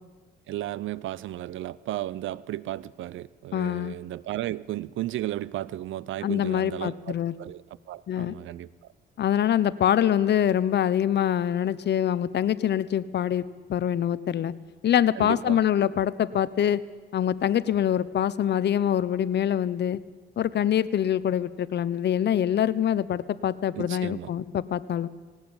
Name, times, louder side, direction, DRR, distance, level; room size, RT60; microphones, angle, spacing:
voice 1, 0.5-8.7 15.2-16.0 23.8-24.3, right 14 dB, 80° right, 0.7 m, -34 dB
voice 2, 3.5-4.0 6.2-7.3 8.1-8.3 9.2-13.4 13.7-14.5 14.8-16.8 17.1-20.0 20.4-25.1, left 10 dB, 60° left, 1.0 m, -24 dB
19.0 x 18.5 x 8.9 m
cardioid pair, 90°, 20 cm